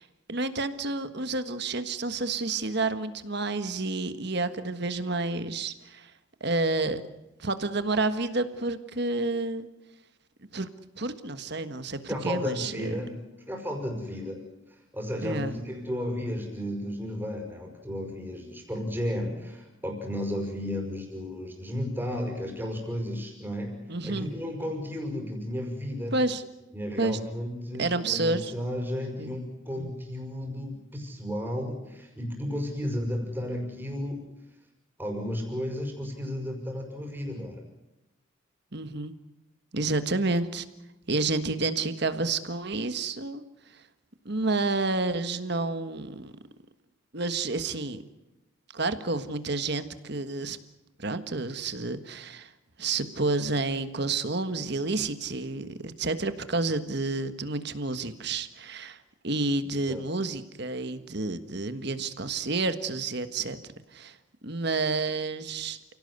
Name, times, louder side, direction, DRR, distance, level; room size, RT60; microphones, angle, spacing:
voice 1, 0.0-6.1 6.4-7.0 7.4-9.7 10.5-10.7 11.0-12.9 15.2-15.5 23.9-24.3 26.1-26.4 27.0-27.2 27.8-28.5 29.2-29.3 29.8-29.9 38.7-39.2 39.7-40.6 41.1-43.4 44.2-46.3 47.1-48.0 48.7-50.6 51.0-52.5 52.8-59.0 59.2-63.6 63.9-64.2 64.4-65.8, right 3 dB, 50° right, 11 dB, 1.5 m, -29 dB
voice 2, 12.1-13.2 13.5-26.1 26.7-34.2 35.0-37.6 59.8-60.1, equal, 10° right, 1 dB, 5.6 m, -33 dB
29.5 x 17.5 x 8.2 m, 0.98 s
head